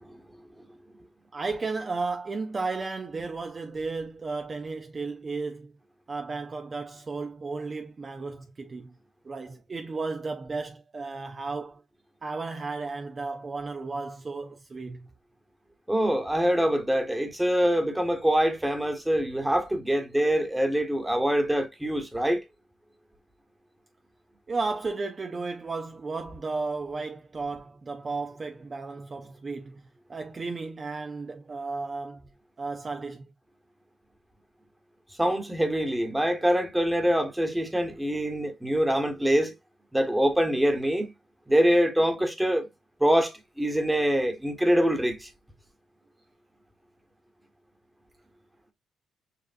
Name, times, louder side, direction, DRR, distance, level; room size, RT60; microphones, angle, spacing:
voice 1, 1.3-5.7 6.1-8.9 9.2-11.8 12.2-15.1 24.5-32.3 32.6-33.3, right 3 dB, 35° right, 0.5 m, -34 dB
voice 2, 15.9-22.4 35.2-39.5 39.9-41.1 41.5-42.7 43.0-45.3, equal, 10° right, 1.2 m, -24 dB
6.7 x 2.4 x 2.5 m
cardioid pair, 90°, 0 cm